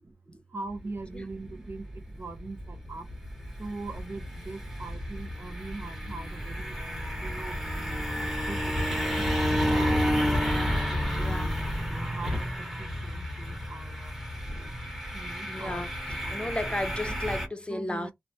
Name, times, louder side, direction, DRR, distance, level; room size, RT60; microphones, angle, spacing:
voice 1, 0.5-1.8 2.2-3.1 3.6-6.7 7.2-8.6 8.9-10.1 10.5-11.6 11.9-12.5 12.8-14.1 15.1-16.5 17.0-17.2 17.7-18.1, right 3 dB, 45° right, 0.5 m, -41 dB
sound 1, 0.7-17.5, equal, 5° right, 0.9 m, -31 dB
voice 2, 11.2-11.5 15.5-15.9 16.3-18.1, left 1 dB, 20° left, 0.6 m, -33 dB
3.0 x 2.0 x 2.7 m
wide cardioid pair, 80°, 5 cm